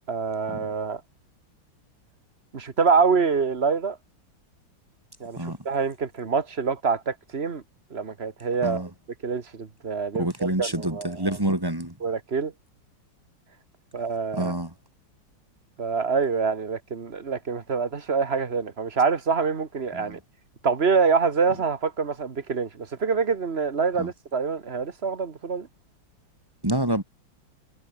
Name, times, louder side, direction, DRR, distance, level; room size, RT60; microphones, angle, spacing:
voice 1, 0.1-1.0 2.5-4.0 5.2-7.6 7.9-8.9 9.2-11.4 12.0-12.5 13.9-14.6 15.8-20.2 20.6-25.7, right 5 dB, 30° right, 1.6 m, -26 dB
voice 2, 10.1-11.9 14.3-14.7 19.9-20.2 24.0-24.1 26.6-27.0, right 1 dB, 10° right, 3.3 m, -27 dB
omnidirectional pair, 2.3 m